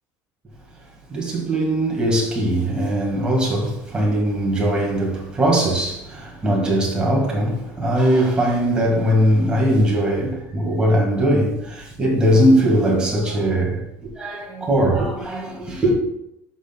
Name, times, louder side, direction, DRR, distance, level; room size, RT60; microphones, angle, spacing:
voice 1, 1.1-13.8 14.2-16.0, right 1 dB, 10° right, 1.7 m, -20 dB
11.5 x 6.2 x 2.3 m
cardioid pair, 180°, 8 cm